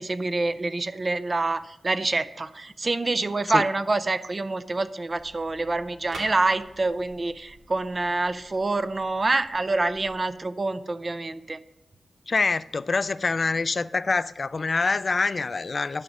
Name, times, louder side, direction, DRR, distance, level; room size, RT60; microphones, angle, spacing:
voice 1, 0.0-11.6, right 2 dB, 35° right, 0.5 m, -26 dB
sound 1, 5.1-10.1, right 2 dB, 70° right, 2.0 m, -48 dB
voice 2, 12.3-16.0, left 4 dB, 45° left, 0.3 m, -25 dB
11.0 x 5.4 x 6.1 m
wide cardioid pair, 100°, 0 cm